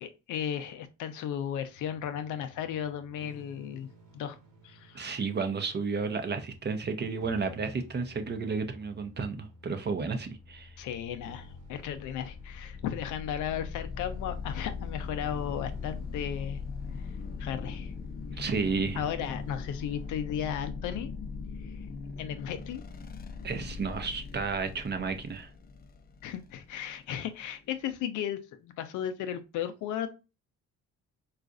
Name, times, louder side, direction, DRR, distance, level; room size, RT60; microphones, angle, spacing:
voice 1, 0.0-3.9 4.1-4.4 4.6-5.2 10.8-16.6 17.4-17.9 18.3-18.5 19.0-21.1 22.2-22.8 26.2-30.1, left 9 dB, 80° left, 0.5 m, -35 dB
sound 1, 1.7-20.1, equal, 80° right, 1.2 m, -54 dB
voice 2, 4.9-10.7 18.4-19.0 23.4-25.5, right 5 dB, 35° right, 0.6 m, -32 dB
sound 2, 10.5-27.9, left 5 dB, 30° left, 0.4 m, -40 dB
3.9 x 2.4 x 2.4 m
cardioid pair, 90°, 30 cm